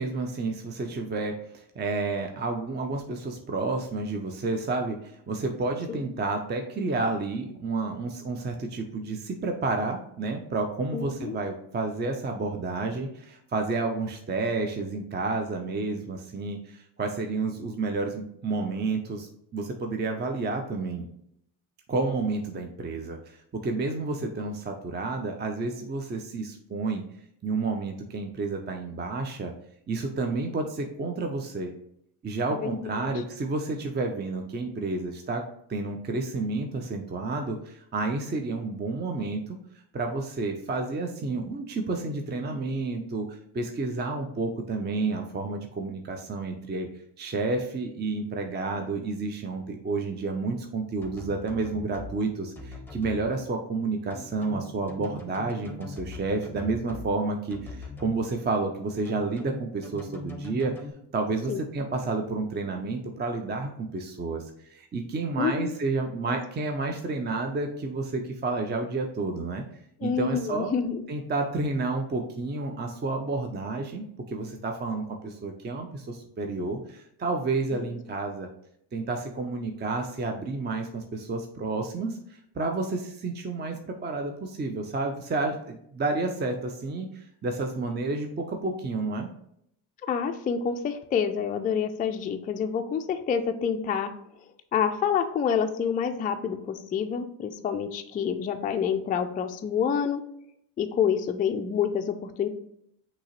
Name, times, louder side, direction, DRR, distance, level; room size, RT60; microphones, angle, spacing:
voice 1, 0.0-21.1 21.9-27.0 27.4-29.5 29.9-31.7 32.2-35.4 35.7-39.6 39.9-46.9 47.2-60.7 61.1-69.6 70.0-70.7 71.1-78.5 78.9-89.3, right 3 dB, 20° right, 4 dB, 0.6 m, -30 dB
voice 2, 10.9-11.4 32.5-33.1 61.5-61.6 65.4-65.7 70.0-71.0 77.7-77.9 90.0-94.1 94.7-100.2 100.8-102.5, left 7 dB, 20° left, 6 dB, 0.3 m, -28 dB
sound 1, 51.0-52.1 52.6-53.2 54.1-57.1 57.5-58.2 59.1-60.9, left 3 dB, 5° left, 1.0 m, -41 dB
6.0 x 2.9 x 3.0 m, 0.71 s
hypercardioid pair, 65°, 50 cm